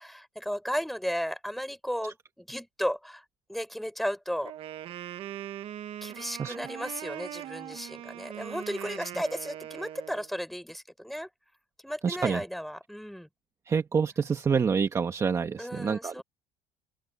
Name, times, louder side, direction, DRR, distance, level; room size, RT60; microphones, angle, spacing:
voice 1, 0.0-3.2 3.5-4.5 6.0-11.3 11.8-13.3 15.6-16.2, equal, ahead, 4.9 m, -34 dB
Wind instrument woodwind instrument, 4.4-10.3, right 12 dB, 50° right, 1.2 m, -41 dB
voice 2, 12.0-12.4 13.7-16.2, right 6 dB, 25° right, 1.7 m, -27 dB
open air
cardioid pair, 125°, 12 cm